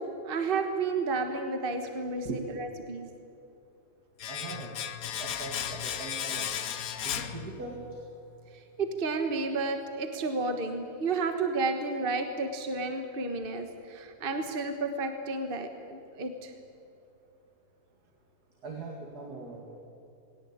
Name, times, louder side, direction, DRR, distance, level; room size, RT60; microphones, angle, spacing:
voice 1, 0.0-2.3 2.5-3.1 8.5-16.5, right 3 dB, 35° right, 6 dB, 1.5 m, -31 dB
Domestic sounds home sounds, 4.2-8.0 8.3-8.4, left 9 dB, 65° left, 1.3 m, -35 dB
voice 2, 4.3-4.8 5.2-6.5 7.0-7.9 18.6-19.8, right 3 dB, 75° right, 0 dB, 2.8 m, -40 dB
21.5 x 17.0 x 8.7 m, 2.6 s
omnidirectional pair, 1.7 m